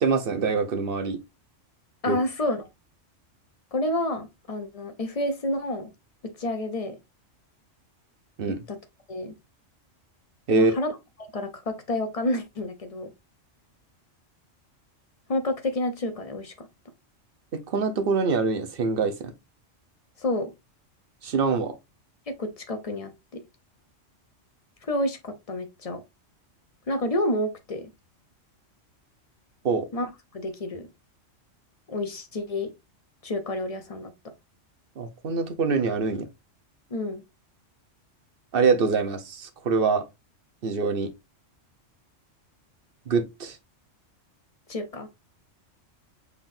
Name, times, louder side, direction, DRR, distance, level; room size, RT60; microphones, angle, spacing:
voice 1, 0.0-1.2 2.1-2.2 8.4-8.6 10.5-10.7 17.5-19.3 21.2-21.7 29.6-29.9 35.0-36.3 38.5-40.0 40.6-41.1 43.1-43.6, right 4 dB, 50° right, 0.9 m, -24 dB
voice 2, 2.0-2.7 3.7-5.9 6.2-7.0 8.7-8.8 9.1-9.3 10.5-11.0 11.3-13.1 15.3-16.7 20.2-20.5 22.3-23.4 24.8-26.0 26.9-27.9 29.9-30.9 31.9-32.7 33.2-34.1 36.9-37.2 44.7-45.1, left 1 dB, 40° left, 0.6 m, -29 dB
5.7 x 3.5 x 2.6 m
omnidirectional pair, 1.3 m